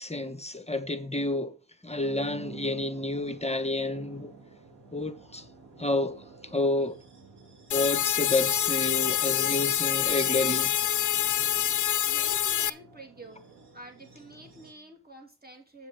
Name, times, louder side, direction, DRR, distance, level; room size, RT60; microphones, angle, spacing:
voice 1, 0.0-1.5 1.8-4.3 4.9-5.4 5.8-7.0 7.7-10.7, left 2 dB, 15° left, 1.1 m, -29 dB
sound 1, 1.9-14.7, right 4 dB, 80° right, 3.2 m, -50 dB
sound 2, 7.7-12.7, left 11 dB, 50° left, 0.5 m, -26 dB
voice 2, 12.1-15.9, right 1 dB, 25° right, 2.9 m, -48 dB
8.2 x 6.8 x 5.6 m
cardioid pair, 80°, 40 cm